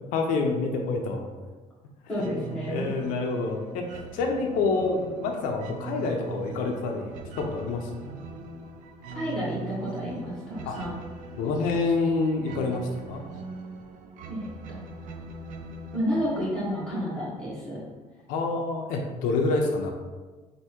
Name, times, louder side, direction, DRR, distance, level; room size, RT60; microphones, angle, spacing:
voice 1, 0.1-1.3 2.2-2.3 2.7-8.2 10.7-10.8 11.4-13.2 18.3-19.9, left 3 dB, 80° left, 2 dB, 0.5 m, -27 dB
voice 2, 2.1-2.9 9.1-11.0 14.3-14.9 15.9-17.8, equal, 5° left, -9 dB, 1.3 m, -31 dB
sound 1, 2.2-17.7, right 3 dB, 75° right, 0.4 m, -41 dB
3.4 x 2.6 x 4.4 m, 1.3 s
cardioid pair, 180°, 13 cm